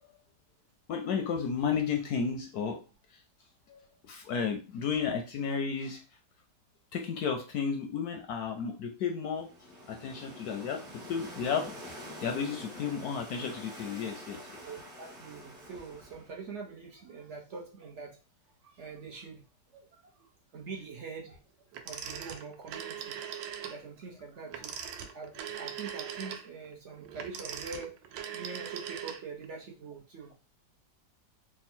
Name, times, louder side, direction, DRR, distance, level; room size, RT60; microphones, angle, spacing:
voice 1, 0.9-2.8 3.7-3.8 4.1-6.0 6.9-9.5 9.9-10.8 11.1-11.7 12.2-14.4, left 6 dB, 70° left, 3 dB, 0.9 m, -32 dB
sound 1, 9.3-16.4, equal, 40° right, 1.0 m, -46 dB
voice 2, 14.6-18.2 18.6-19.4 19.7-21.4 21.8-23.2 23.6-24.8 25.1-28.0 28.3-30.3, right 4 dB, 65° right, 0 dB, 0.7 m, -44 dB
Telephone, 21.7-23.8 24.5-29.5, right 8 dB, 80° right, 1.3 m, -40 dB
3.5 x 2.2 x 4.3 m, 0.33 s
omnidirectional pair, 2.0 m